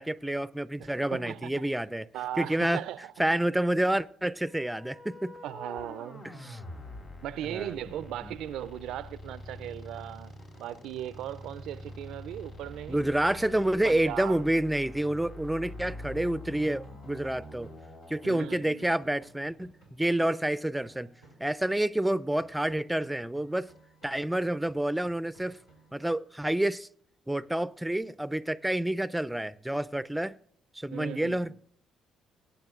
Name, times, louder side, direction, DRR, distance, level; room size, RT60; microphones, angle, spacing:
voice 1, 0.0-2.1 2.4-2.8 3.2-5.3 6.4-6.6 7.5-7.7 12.9-17.7 18.1-21.1 21.4-23.7 24.0-25.6 25.9-26.9 27.3-30.3 30.8-31.5, right 1 dB, 5° right, 0.5 m, -28 dB
voice 2, 0.8-1.7 2.1-3.1 5.4-6.2 7.2-10.3 10.6-13.1 13.8-14.4 18.2-18.9 30.9-31.6, right 12 dB, 70° right, 0.4 m, -38 dB
sound 1, 4.4-18.3, left 1 dB, 65° left, 3.7 m, -45 dB
sound 2, 9.2-22.1 22.4-26.2, right 2 dB, 85° left, 3.3 m, -58 dB
23.0 x 9.1 x 2.4 m
hypercardioid pair, 50°, 0 cm